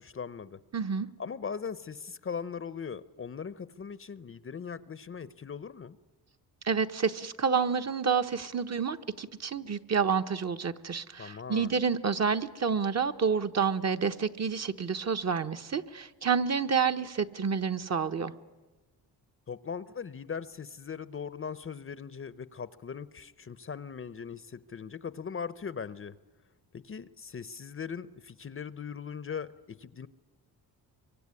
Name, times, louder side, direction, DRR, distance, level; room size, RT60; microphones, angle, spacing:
voice 1, 0.0-0.6 1.2-6.0 11.2-11.8 19.5-26.1 26.7-30.1, left 6 dB, 35° left, 16 dB, 0.8 m, -39 dB
voice 2, 0.7-1.1 6.6-18.3, right 6 dB, 40° right, 7 dB, 1.2 m, -29 dB
24.5 x 24.0 x 9.8 m, 1.2 s
cardioid pair, 80°, 39 cm